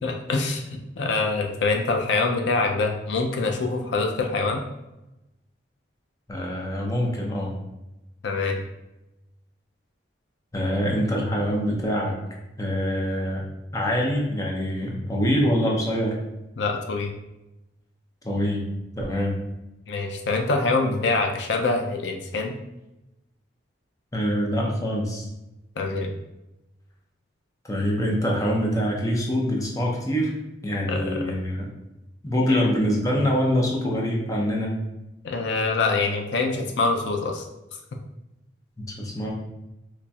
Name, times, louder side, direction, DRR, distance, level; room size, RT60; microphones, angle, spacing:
voice 1, 0.0-4.6 8.2-8.6 16.6-17.1 19.9-22.5 25.8-26.1 30.9-31.3 32.5-32.7 35.2-37.4, left 3 dB, 70° left, 3 dB, 0.4 m, -25 dB
voice 2, 6.3-7.6 10.5-12.1 12.6-13.4 13.7-16.1 18.2-18.6 19.0-19.3 24.1-25.3 27.7-30.3 30.6-31.7 32.2-34.7 38.8-39.3, equal, 20° left, -2 dB, 0.6 m, -24 dB
4.0 x 3.0 x 2.3 m, 0.96 s
head